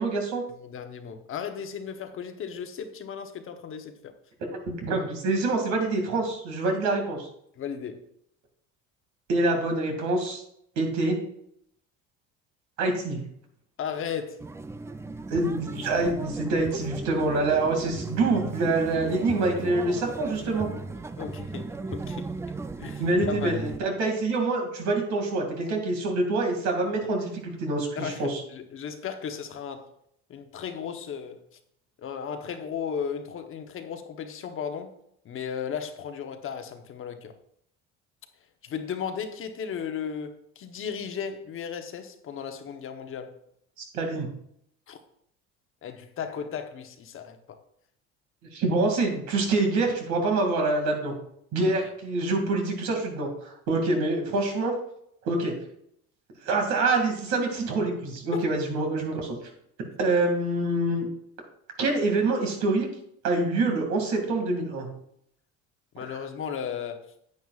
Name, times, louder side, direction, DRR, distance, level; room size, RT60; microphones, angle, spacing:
voice 1, 0.0-0.4 4.6-7.3 9.3-10.4 10.8-11.2 12.8-13.2 15.3-20.7 23.0-28.4 43.8-44.3 48.5-51.1 51.5-54.7 55.2-55.5 56.4-59.4 60.0-61.1 61.8-62.9 63.2-64.9 66.0-66.2, right 2 dB, 70° right, 2.3 m, -26 dB
voice 2, 0.6-4.1 7.6-8.0 13.8-14.4 21.2-22.3 22.8-23.5 28.0-29.9 30.3-31.4 32.0-34.9 35.2-37.3 38.6-43.4 44.9-45.0 45.8-47.6 51.6-51.8 58.3-58.5 65.9-67.1, left 7 dB, 45° left, 0.9 m, -35 dB
sound 1, 14.4-23.8, right 3 dB, 10° right, 0.3 m, -36 dB
9.5 x 8.8 x 2.4 m
cardioid pair, 110°, 30 cm